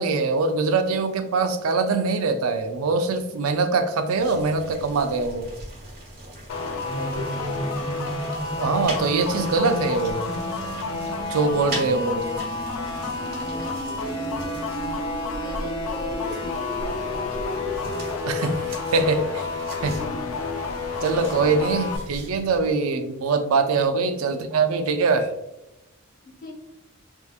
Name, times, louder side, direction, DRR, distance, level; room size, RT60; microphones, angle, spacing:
voice 1, 0.0-5.5 8.6-10.3 11.3-12.3 18.3-18.6 18.9-19.5 19.8-19.9 21.0-25.3, right 4 dB, 85° right, 8 dB, 0.4 m, -23 dB
sound 1, 4.1-22.7, right 1 dB, 40° right, 1.4 m, -39 dB
sound 2, 6.5-22.0, left 3 dB, 90° left, 0.5 m, -31 dB
voice 2, 6.6-8.2 13.4-14.2 14.9-17.8 19.7-20.7 21.7-22.1 22.8-23.1 24.2-24.6 26.2-26.5, left 2 dB, 40° left, -3 dB, 1.0 m, -40 dB
sound 3, 6.9-18.5, equal, 5° left, 0.5 m, -35 dB
3.6 x 2.7 x 2.4 m, 0.89 s
head